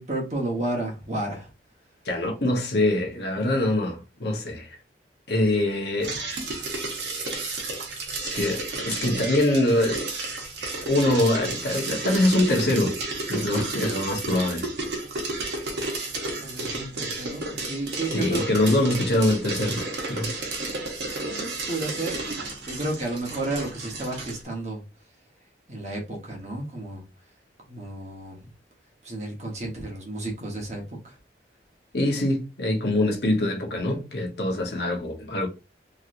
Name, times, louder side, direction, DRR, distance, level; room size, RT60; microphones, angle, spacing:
voice 1, 0.0-1.5 16.4-18.8 21.3-22.2 22.7-24.8 25.7-27.0 27.7-28.5 29.0-31.1, right 2 dB, 40° right, 1.0 m, -32 dB
voice 2, 2.0-4.8 5.3-6.2 8.3-10.1 10.8-13.0 13.3-14.7 16.2-16.3 18.1-19.8 20.1-20.3 31.9-35.5, left 1 dB, 70° left, 1.0 m, -24 dB
sound 1, 6.0-24.4, right 2 dB, 75° right, 0.9 m, -32 dB
3.0 x 2.9 x 2.5 m
head